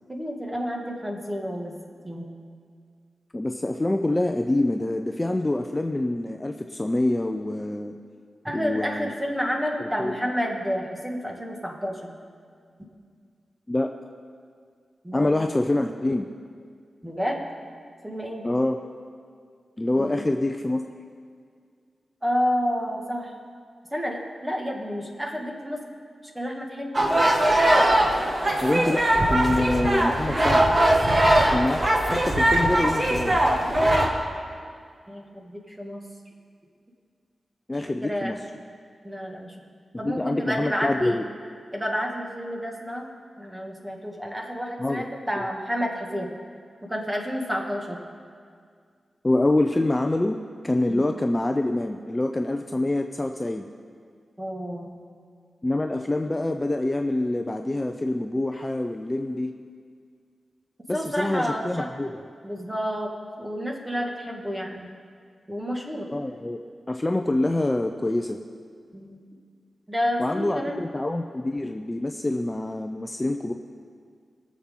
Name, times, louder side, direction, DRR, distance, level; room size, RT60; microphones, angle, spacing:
voice 1, 0.1-1.8 2.0-2.3 8.4-12.1 15.0-15.3 17.0-17.4 18.0-18.5 19.9-20.2 22.2-23.3 23.9-25.8 26.3-27.0 33.4-33.6 35.1-36.0 38.0-38.4 39.0-39.5 40.0-41.2 41.7-43.1 43.4-46.3 46.9-48.0 50.9-51.0 54.4-55.0 60.9-61.9 62.4-63.1 63.4-64.9 65.5-66.1 68.9-69.3 69.9-70.8, equal, 10° right, 0 dB, 2.0 m, -30 dB
voice 2, 3.3-7.9 8.5-9.1 9.8-10.1 13.7-13.9 15.1-16.2 18.4-18.8 19.8-20.8 28.6-30.7 31.5-33.4 37.7-38.4 40.0-41.2 44.8-45.0 45.4-45.5 49.2-53.7 55.6-59.5 60.9-62.2 66.1-66.6 66.9-68.4 70.2-73.5, left 2 dB, 20° left, 4 dB, 0.6 m, -26 dB
sound 1, 26.9-34.1, right 1 dB, 35° right, 1.8 m, -20 dB
21.5 x 7.4 x 3.8 m, 2.1 s
cardioid pair, 70°, 0 cm